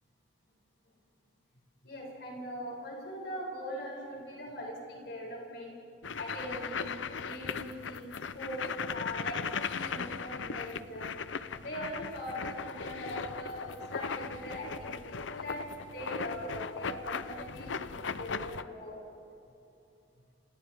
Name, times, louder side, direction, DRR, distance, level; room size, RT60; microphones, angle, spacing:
voice 1, 1.8-5.7 6.2-6.8 7.2-8.1 8.3-9.4 9.7-11.1 11.6-15.6 15.9-19.0, equal, 65° left, -3 dB, 7.4 m, -41 dB
sound 1, 6.0-18.6, left 5 dB, 90° left, 0.7 m, -38 dB
29.5 x 28.5 x 3.6 m, 2.8 s
head